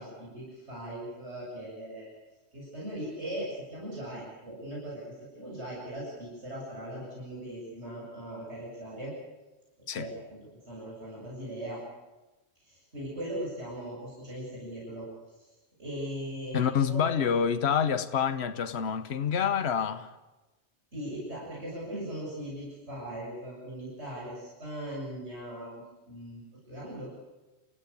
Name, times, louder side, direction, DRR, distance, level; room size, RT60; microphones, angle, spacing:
voice 1, 0.0-2.1 2.5-9.1 9.9-10.4 10.7-11.8 12.6-15.1 15.8-17.4 20.9-27.1, right 1 dB, 90° right, 8.1 m, -39 dB
voice 2, 16.5-20.1, left 7 dB, 75° left, 1.2 m, -27 dB
27.5 x 16.0 x 8.6 m
omnidirectional pair, 1.1 m